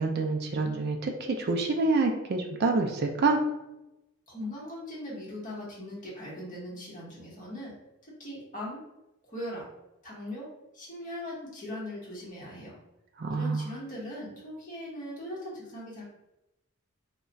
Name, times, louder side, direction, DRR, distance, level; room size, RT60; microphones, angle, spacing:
voice 1, 0.0-3.4 13.2-13.6, right 3 dB, 45° right, 4 dB, 0.3 m, -27 dB
voice 2, 4.3-7.7 8.0-8.8 9.2-9.7 10.0-10.5 10.7-12.8 13.3-16.0, left 1 dB, 35° left, -5 dB, 1.1 m, -39 dB
2.3 x 2.2 x 3.9 m, 0.94 s
head